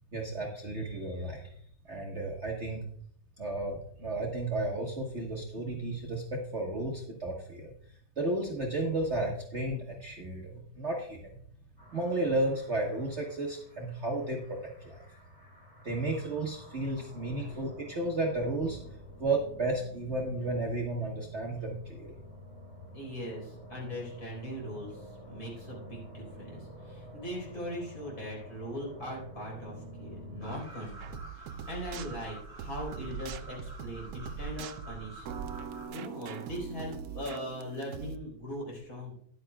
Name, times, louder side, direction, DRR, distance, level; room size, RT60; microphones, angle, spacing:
voice 1, 0.1-1.5 1.8-2.8 3.4-11.4 11.9-14.9 15.8-18.8 19.2-22.1, right 2 dB, 40° right, -1 dB, 1.3 m, -33 dB
sound 1, 11.8-30.6, equal, 65° left, 5.5 m, -50 dB
voice 2, 22.9-35.3 35.7-39.1, equal, 50° left, -2 dB, 4.5 m, -40 dB
sound 2, 30.4-35.9, right 4 dB, 5° left, 4.4 m, -45 dB
sound 3, 31.0-38.2, right 7 dB, 70° right, 0.9 m, -42 dB
13.5 x 10.5 x 2.3 m, 0.63 s
omnidirectional pair, 2.1 m